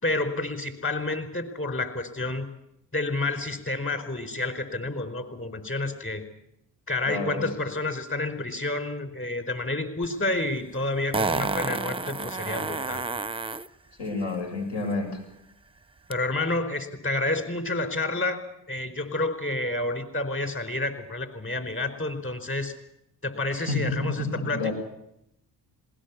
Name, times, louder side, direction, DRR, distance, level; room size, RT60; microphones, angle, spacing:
voice 1, 0.0-2.5 2.9-6.2 6.9-13.1 16.1-18.4 18.7-22.7 23.2-24.7, left 2 dB, 30° left, 8 dB, 4.6 m, -29 dB
voice 2, 7.0-7.5 14.0-15.1 23.7-23.9 24.5-24.7, left 3 dB, 70° left, 2 dB, 7.6 m, -29 dB
Fart, 10.0-10.1 11.1-13.7 16.1-16.2, right 3 dB, 15° right, 0.8 m, -29 dB
20.0 x 18.5 x 8.5 m, 0.81 s
supercardioid pair, 65°, 42 cm